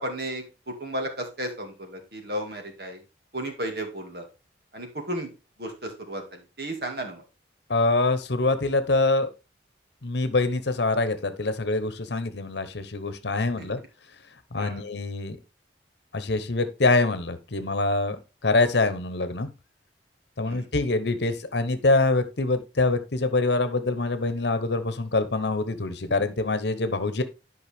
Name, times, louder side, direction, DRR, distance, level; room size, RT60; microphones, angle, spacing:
voice 1, 0.0-3.0 3.3-4.3 4.7-5.3 5.6-7.2 13.6-13.7 14.6-14.8 20.4-20.7, right 1 dB, 60° right, 3 dB, 2.2 m, -34 dB
voice 2, 7.7-9.3 10.0-13.8 14.5-15.4 16.1-19.5 20.4-27.2, left 3 dB, 70° left, 11 dB, 0.9 m, -25 dB
11.0 x 5.4 x 3.5 m, 0.30 s
head